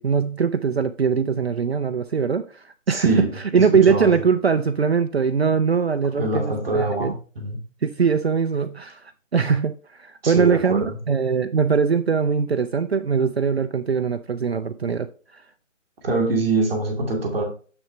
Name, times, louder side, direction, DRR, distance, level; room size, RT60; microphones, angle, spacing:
voice 1, 0.0-3.1 3.5-7.1 7.8-9.0 9.3-15.1 15.3-15.4, right 6 dB, 55° right, 9 dB, 0.5 m, -21 dB
voice 2, 2.9-4.2 6.1-7.6 10.2-10.9 16.0-17.4, right 2 dB, ahead, -16 dB, 0.7 m, -24 dB
7.1 x 6.3 x 3.2 m, 0.38 s
figure-of-eight pair, 155°, 39 cm